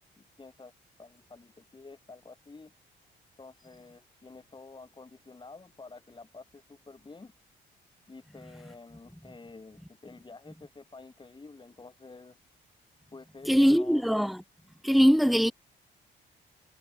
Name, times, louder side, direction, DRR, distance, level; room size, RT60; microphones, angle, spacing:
voice 1, 0.4-0.7 1.0-2.7 3.4-7.3 8.1-12.4 13.1-14.0, left 3 dB, 25° left, 4.2 m, -49 dB
voice 2, 13.5-14.4 14.8-15.5, equal, ahead, 1.4 m, -22 dB
cardioid pair, 90°, 20 cm